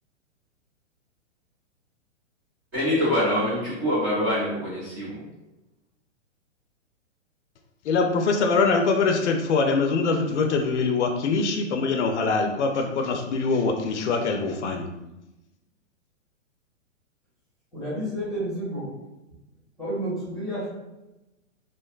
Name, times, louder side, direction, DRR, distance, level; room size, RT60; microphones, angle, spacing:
voice 1, 2.7-5.2, left 1 dB, 20° right, -10 dB, 0.4 m, -25 dB
voice 2, 7.8-14.9, left 4 dB, 65° left, 4 dB, 0.5 m, -23 dB
voice 3, 17.7-18.9 19.8-20.7, right 1 dB, ahead, -8 dB, 0.7 m, -30 dB
2.5 x 2.2 x 2.3 m, 0.97 s
hypercardioid pair, 145°, 38 cm